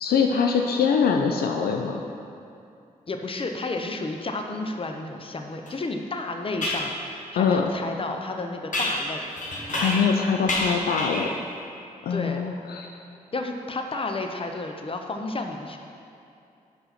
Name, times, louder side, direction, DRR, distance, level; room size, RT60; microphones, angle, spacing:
voice 1, 0.0-2.0 7.4-7.7 9.7-11.3 12.0-13.0, left 6 dB, 75° left, 3 dB, 0.4 m, -23 dB
voice 2, 3.1-9.3 12.1-12.4 13.3-15.8, left 2 dB, 35° left, 4 dB, 0.7 m, -31 dB
sound 1, 5.7-5.8 6.6-6.9 8.7-10.2 10.5-11.4, left 1 dB, 50° left, 1.4 m, -28 dB
5.6 x 5.5 x 4.2 m, 2.6 s
supercardioid pair, 45°, 16 cm